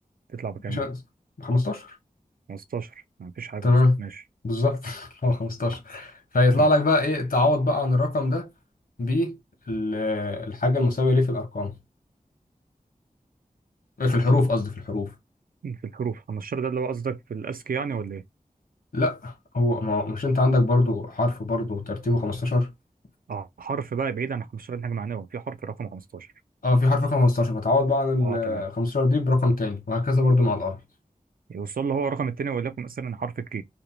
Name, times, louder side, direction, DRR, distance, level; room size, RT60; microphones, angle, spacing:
voice 1, 0.3-0.9 2.5-4.2 6.6-6.7 15.6-18.2 23.3-26.3 28.2-28.6 31.5-33.6, right 6 dB, 80° right, 0.4 m, -31 dB
voice 2, 1.4-2.0 3.6-4.0 4.4-8.5 9.0-9.4 9.7-11.7 14.0-15.1 18.9-22.7 26.6-30.8, left 2 dB, 80° left, 0.9 m, -23 dB
2.5 x 2.0 x 3.0 m
wide cardioid pair, 40°, 15 cm